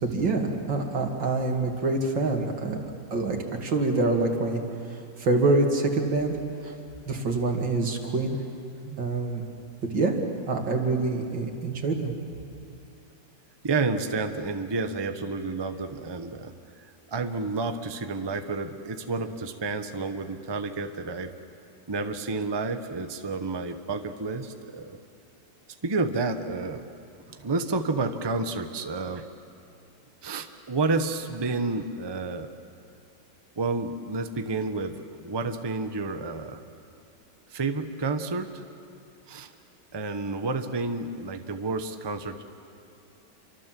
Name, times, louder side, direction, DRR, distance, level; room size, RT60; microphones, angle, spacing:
voice 1, 0.0-2.8 3.1-4.6 5.2-6.4 6.6-6.7 7.1-8.4 9.0-9.4 9.9-10.2 10.5-12.1, right 3 dB, 85° right, 2 dB, 3.1 m, -25 dB
voice 2, 13.6-21.3 21.9-25.0 25.8-26.8 27.3-29.2 30.2-32.5 33.6-36.6 37.5-38.6 39.3-39.5 39.9-42.4, right 3 dB, 20° right, 7 dB, 0.8 m, -30 dB
28.5 x 24.5 x 7.6 m, 2.5 s
omnidirectional pair, 1.9 m